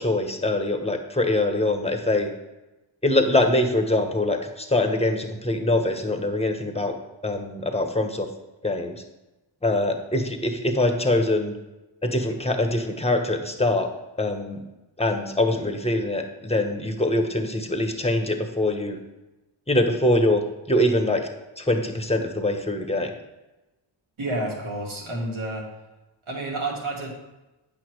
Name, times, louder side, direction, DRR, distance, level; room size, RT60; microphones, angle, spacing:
voice 1, 0.0-2.3 3.0-6.9 7.2-8.3 8.6-9.0 9.6-11.5 12.0-13.9 14.2-14.6 15.0-19.0 19.7-21.3 21.6-23.1, left 1 dB, 15° left, 5 dB, 1.4 m, -23 dB
voice 2, 24.2-25.7 26.3-27.1, right 2 dB, 80° right, -2 dB, 2.3 m, -30 dB
8.6 x 5.9 x 4.8 m, 1.0 s
cardioid pair, 40°, 48 cm